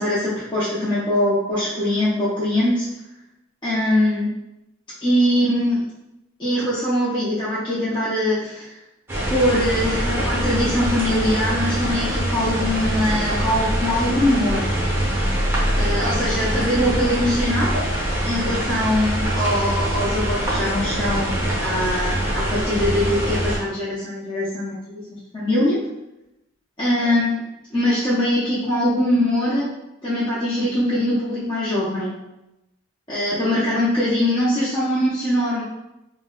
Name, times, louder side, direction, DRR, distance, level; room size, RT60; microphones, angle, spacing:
voice 1, 0.0-2.9 3.6-4.3 5.0-5.8 6.4-8.7 9.3-14.6 15.7-17.7 18.2-21.3 21.6-25.8 26.8-27.4 27.7-29.7 30.0-32.1 33.1-35.6, left 1 dB, 25° left, -10 dB, 0.6 m, -22 dB
sound 1, 9.1-23.6, right 1 dB, 10° right, 0.7 m, -23 dB
2.6 x 2.1 x 3.7 m, 0.93 s
head